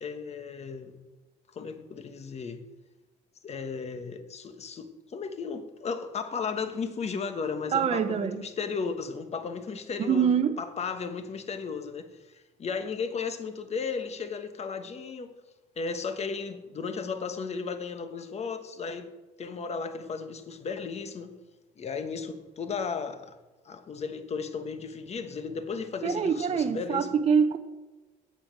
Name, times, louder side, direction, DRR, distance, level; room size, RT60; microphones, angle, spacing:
voice 1, 0.0-0.9 1.5-2.6 3.4-15.3 15.8-19.1 19.4-21.3 21.8-23.4 23.6-27.1, left 5 dB, 40° left, 8 dB, 1.3 m, -35 dB
voice 2, 7.7-8.4 10.1-10.6 26.0-27.6, right 7 dB, 40° right, 8 dB, 0.8 m, -25 dB
8.7 x 7.7 x 8.7 m, 1.2 s
cardioid pair, 110°, 17 cm